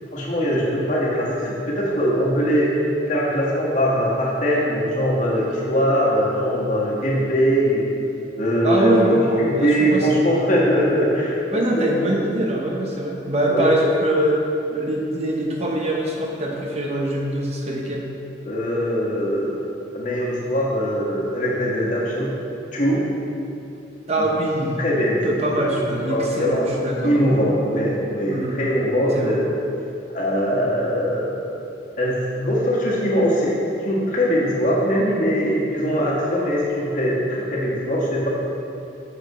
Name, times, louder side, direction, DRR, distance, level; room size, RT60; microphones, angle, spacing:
voice 1, 0.1-2.8 3.1-7.8 8.4-9.1 9.4-11.6 11.9-12.0 13.5-13.8 18.4-19.6 19.9-22.3 22.7-23.0 24.2-24.3 24.8-25.5 26.1-26.6 27.0-29.5 30.1-31.4 32.0-33.5 33.8-38.3, equal, 45° left, -5 dB, 1.6 m, -21 dB
voice 2, 8.6-10.2 11.5-14.4 14.7-18.1 24.1-24.8 25.2-27.1 28.3-28.6 29.1-29.4, right 1 dB, 35° right, -1 dB, 0.8 m, -23 dB
9.4 x 6.9 x 3.1 m, 2.8 s
head